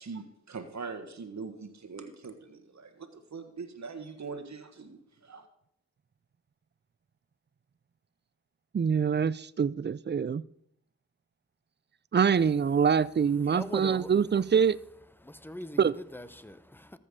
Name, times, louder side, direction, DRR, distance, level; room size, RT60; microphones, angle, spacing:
voice 1, 0.0-5.5, right 4 dB, 65° right, 1.4 m, -42 dB
voice 2, 8.7-10.4 12.1-14.8 15.8-15.9, right 7 dB, 35° right, 0.5 m, -25 dB
voice 3, 13.4-14.5 15.1-17.0, left 1 dB, 5° left, 0.9 m, -42 dB
14.0 x 5.5 x 6.6 m
cardioid pair, 40°, 30 cm